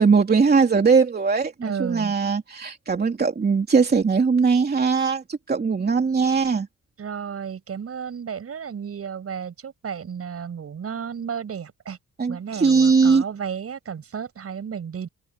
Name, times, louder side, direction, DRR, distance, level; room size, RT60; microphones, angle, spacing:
voice 1, 0.0-6.7 12.2-13.2, right 5 dB, 30° right, 3.1 m, -20 dB
voice 2, 1.6-2.1 7.0-12.0 12.3-15.1, right 7 dB, 50° right, 7.8 m, -33 dB
open air
cardioid pair, 90°, 30 cm